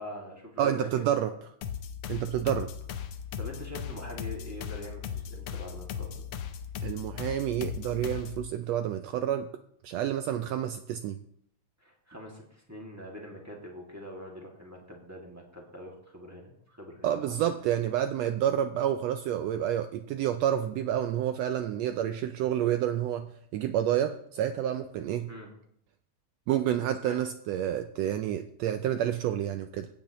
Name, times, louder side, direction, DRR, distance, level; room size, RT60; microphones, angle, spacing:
voice 1, 0.0-1.4 3.4-6.2 11.8-17.5 25.3-25.5 27.0-27.2, equal, 5° right, -2 dB, 1.5 m, -44 dB
voice 2, 0.6-1.3 2.1-2.7 6.8-9.5 9.8-11.2 17.0-25.3 26.5-29.9, right 10 dB, 80° right, 8 dB, 1.5 m, -29 dB
sound 1, 1.6-8.5, left 8 dB, 80° left, 1.2 m, -37 dB
16.5 x 8.8 x 3.0 m, 0.69 s
omnidirectional pair, 3.4 m